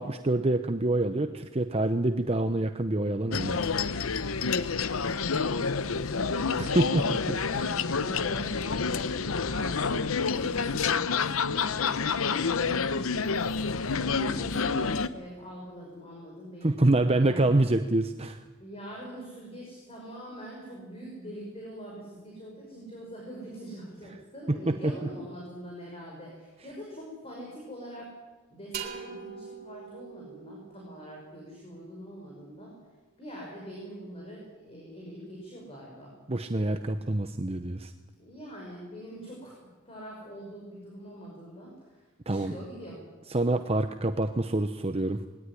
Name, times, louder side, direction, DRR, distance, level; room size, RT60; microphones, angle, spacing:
voice 1, 0.0-3.7 6.5-7.8 16.6-18.4 24.7-24.9 36.3-37.9 42.3-42.5 43.3-45.2, right 2 dB, 30° right, 8 dB, 0.8 m, -26 dB
sound 1, 3.3-15.1, left 5 dB, 75° left, 0.8 m, -28 dB
voice 2, 4.5-6.2 7.9-10.1 10.4-13.0 13.7-17.9 18.6-28.1 28.5-32.7 33.2-36.1 38.2-39.6 39.9-43.0, equal, 30° left, -2 dB, 5.8 m, -44 dB
sound 2, 28.7-32.4, right 6 dB, 45° right, 3.6 m, -43 dB
21.0 x 18.0 x 10.0 m, 1.2 s
head